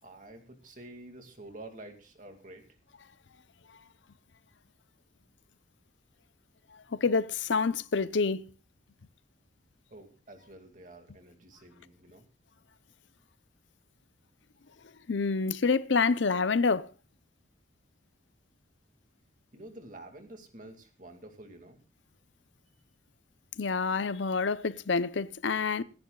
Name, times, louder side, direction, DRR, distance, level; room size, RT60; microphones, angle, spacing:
voice 1, 0.0-2.6 9.9-12.2 19.5-21.8, right 1 dB, 45° right, 2.3 m, -49 dB
voice 2, 6.9-8.5 15.1-16.9 23.6-25.8, left 4 dB, 75° left, 0.7 m, -27 dB
26.5 x 10.5 x 2.4 m
head